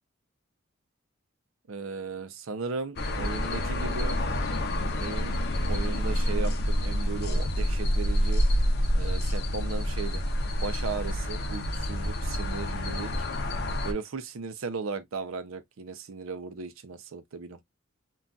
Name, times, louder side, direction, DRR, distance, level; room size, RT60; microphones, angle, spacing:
voice 1, 1.7-4.2 4.9-8.4 8.9-10.2 10.6-13.1 13.8-17.6, right 4 dB, 75° right, 0.5 m, -36 dB
sound 1, 3.0-13.9, equal, 50° left, 0.6 m, -28 dB
3.9 x 2.3 x 2.2 m
head